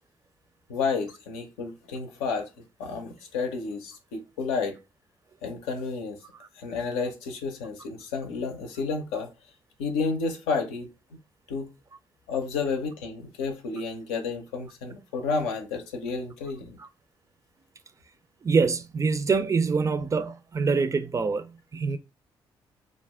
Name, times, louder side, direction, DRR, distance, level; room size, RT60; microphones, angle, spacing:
voice 1, 0.7-2.5 2.8-4.8 5.4-6.2 6.5-9.3 9.8-10.9 11.5-11.7 12.3-16.8, left 4 dB, 80° left, 0.5 m, -31 dB
voice 2, 18.4-22.0, right 4 dB, 30° right, 0.4 m, -25 dB
2.4 x 2.0 x 3.5 m
hypercardioid pair, 45°, 11 cm